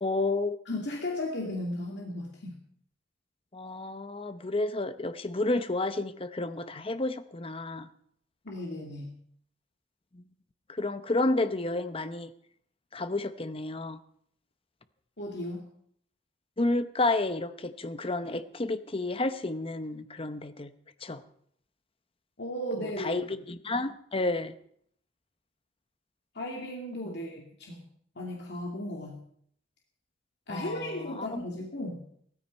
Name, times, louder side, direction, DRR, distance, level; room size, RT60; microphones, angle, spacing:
voice 1, 0.0-0.6 3.5-7.9 10.1-10.2 10.7-12.3 12.9-14.0 16.6-20.7 21.0-21.2 22.8-24.5 27.0-27.2 30.5-31.5, left 2 dB, 30° left, 11 dB, 0.8 m, -31 dB
voice 2, 0.7-2.6 8.4-9.2 15.2-15.7 22.4-23.4 26.3-27.8 28.2-29.2 30.5-32.0, left 1 dB, 60° left, -1 dB, 2.4 m, -36 dB
16.0 x 14.0 x 5.3 m, 0.65 s
head